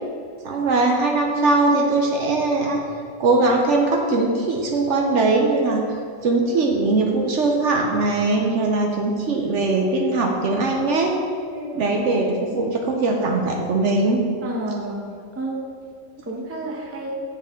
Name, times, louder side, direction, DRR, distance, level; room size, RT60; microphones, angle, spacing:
voice 1, 0.4-2.8 3.2-5.8 6.2-11.1 11.7-14.2, right 3 dB, 60° right, 1 dB, 0.9 m, -20 dB
voice 2, 11.5-11.8 14.4-15.1 15.4-15.6 16.3-17.2, right 2 dB, 15° right, -1 dB, 0.6 m, -30 dB
6.8 x 6.6 x 3.6 m, 2.3 s
omnidirectional pair, 1.5 m